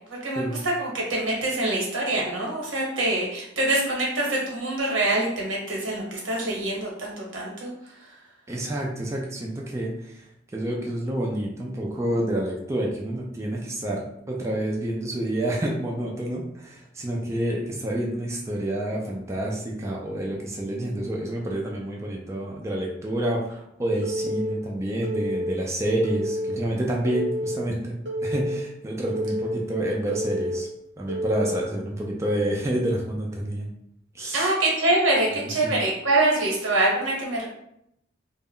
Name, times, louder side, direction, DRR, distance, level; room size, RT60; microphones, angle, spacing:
voice 1, 0.1-7.7 34.3-37.5, right 2 dB, 85° right, -3 dB, 0.9 m, -25 dB
voice 2, 8.5-10.2 10.5-30.7 31.0-33.7 34.1-34.5 35.4-35.8, right 1 dB, 15° right, -2 dB, 0.3 m, -28 dB
Telephone, 24.0-24.5 25.0-25.5 26.0-26.6 27.0-27.6 28.1-28.6 29.1-29.6 30.1-30.6 31.1-31.6, equal, 60° right, 0.7 m, -29 dB
2.0 x 2.0 x 3.6 m, 0.78 s
head